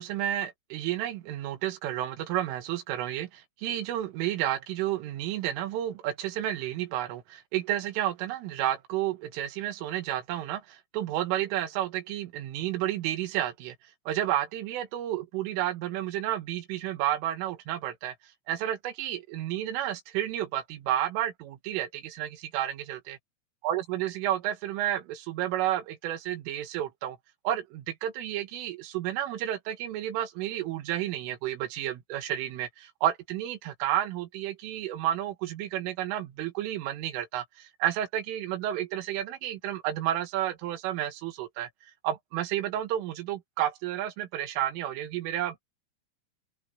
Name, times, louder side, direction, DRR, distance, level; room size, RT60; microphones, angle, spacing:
voice 1, 0.0-13.8 14.1-18.2 18.5-23.2 23.6-27.2 27.5-41.7 42.0-45.6, right 12 dB, 90° right, 4.1 m, -31 dB
open air
omnidirectional pair, 5.7 m